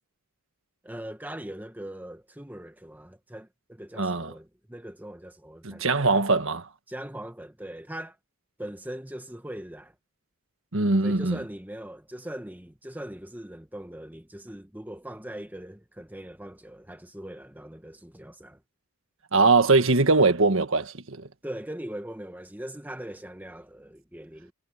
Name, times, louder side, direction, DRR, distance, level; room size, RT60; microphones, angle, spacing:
voice 1, 0.8-5.9 6.9-8.2 8.6-9.9 11.0-18.6 21.4-24.5, right 1 dB, 10° right, 1.2 m, -40 dB
voice 2, 4.0-4.3 5.6-6.7 10.7-11.4 19.3-21.3, right 3 dB, 65° right, 1.5 m, -22 dB
head